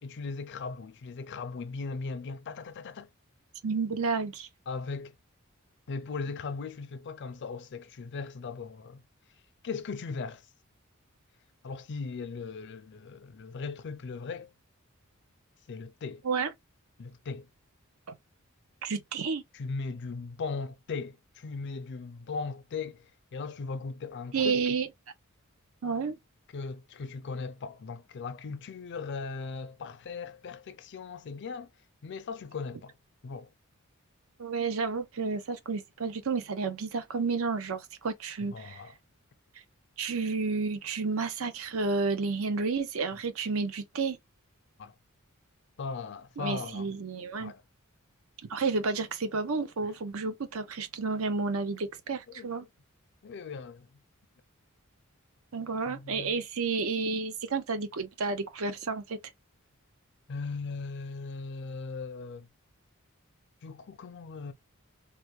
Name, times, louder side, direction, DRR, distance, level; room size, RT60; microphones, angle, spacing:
voice 1, 0.0-3.1 4.7-5.1 5.9-9.0 9.6-10.5 11.6-14.5 15.7-16.2 17.0-17.5 19.5-24.7 26.5-31.7 32.0-33.0 33.2-33.5 38.5-38.9 44.8-44.9 45.8-46.9 47.4-47.6 49.8-49.9 52.3-52.7 53.2-53.9 55.9-56.5 60.3-62.5 63.6-64.5, left 4 dB, 55° left, 0.4 m, -38 dB
voice 2, 3.6-4.5 16.2-16.5 18.8-19.4 24.3-24.9 25.8-26.2 34.4-38.8 40.0-44.2 46.4-47.5 48.5-52.7 55.5-59.2, right 4 dB, 75° right, 0.6 m, -31 dB
3.2 x 2.2 x 3.0 m
head